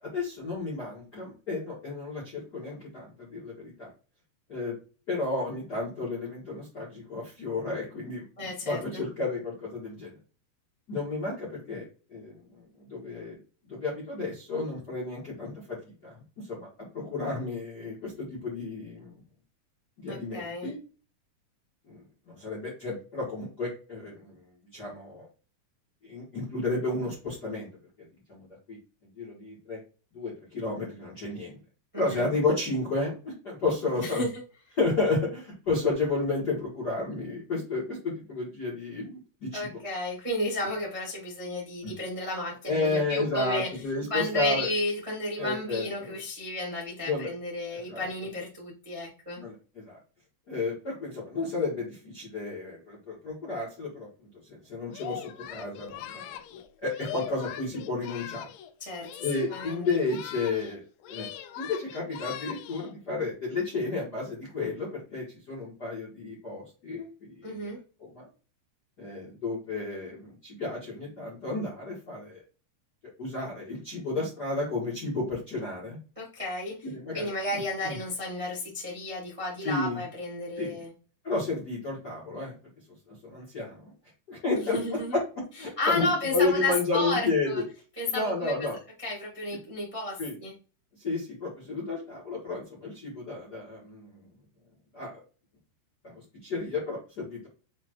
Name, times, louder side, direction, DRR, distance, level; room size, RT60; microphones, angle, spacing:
voice 1, 0.0-3.9 4.5-4.7 5.1-10.1 10.9-11.8 12.1-12.3 12.8-13.4 13.7-15.8 16.0-16.2 16.5-16.7 16.9-19.1 20.0-20.8 21.9-24.4 24.7-25.3 26.0-27.7 28.3-28.8 29.2-29.8 30.1-31.6 32.0-34.2 34.8-39.8 41.8-41.9 42.7-44.7 45.4-46.1 47.0-47.3 47.9-48.0 49.4-50.0 50.5-58.5 59.2-61.3 61.6-67.7 68.0-68.3 69.0-72.4 73.2-76.0 76.8-77.9 79.6-80.0 80.6-80.8 81.2-82.5 83.1-83.9 84.3-84.8 85.1-85.2 85.6-87.6 88.1-88.8 90.2-90.3 91.0-94.2 94.9-95.2 96.1-97.5, left 3 dB, 65° left, -5 dB, 1.0 m, -32 dB
voice 2, 8.4-9.0 20.1-20.7 31.9-32.3 33.9-34.3 39.5-43.7 44.1-49.4 58.8-59.8 67.4-67.8 76.1-76.9 77.1-80.9 84.5-85.2 85.6-87.6 88.0-88.7 89.0-90.5, left 2 dB, 60° right, -4 dB, 0.3 m, -32 dB
Singing, 54.9-58.7 59.0-60.8 61.0-62.9, left 11 dB, 90° left, 2.0 m, -41 dB
7.1 x 2.4 x 3.0 m, 0.35 s
omnidirectional pair, 4.6 m